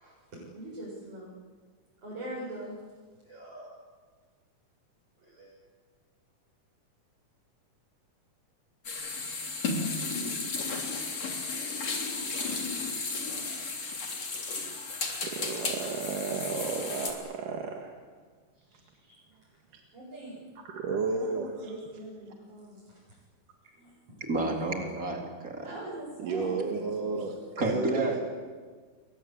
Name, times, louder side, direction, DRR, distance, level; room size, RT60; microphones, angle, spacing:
voice 1, 0.0-1.3 2.0-2.8 3.2-3.8 5.2-5.5 18.6-19.1 19.9-20.4 21.1-23.0 23.7-23.9 25.6-26.8, right 1 dB, 45° right, -6 dB, 8.3 m, -42 dB
sound 1, 8.8-17.1, left 4 dB, 50° left, 4.6 m, -34 dB
voice 2, 12.3-12.9 15.2-18.0 19.7-19.8 20.6-21.7 26.2-28.2, right 4 dB, 80° right, 2 dB, 3.4 m, -33 dB
voice 3, 24.2-25.7 27.6-28.2, right 2 dB, 25° right, 2 dB, 4.0 m, -30 dB
29.5 x 23.5 x 8.5 m, 1.5 s
omnidirectional pair, 3.7 m